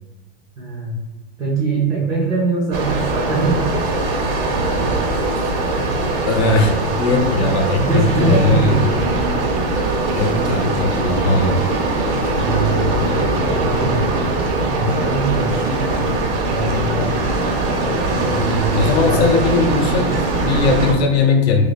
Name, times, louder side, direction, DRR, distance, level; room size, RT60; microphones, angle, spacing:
voice 1, 0.6-0.9 1.4-3.6 7.0-7.5 7.8-9.2 12.3-13.1 13.4-14.0 14.7-16.1 16.4-17.1 18.3-19.2, right 3 dB, 15° right, -6 dB, 0.3 m, -22 dB
sound 1, 2.7-20.9, right 2 dB, 65° right, 0.8 m, -21 dB
voice 2, 6.3-8.8 10.1-11.6 18.7-21.6, left 3 dB, 75° left, 3 dB, 0.8 m, -18 dB
sound 2, 7.9-20.9, right 3 dB, 90° right, 0.5 m, -31 dB
2.4 x 2.4 x 3.9 m, 1.1 s
supercardioid pair, 155°, 32 cm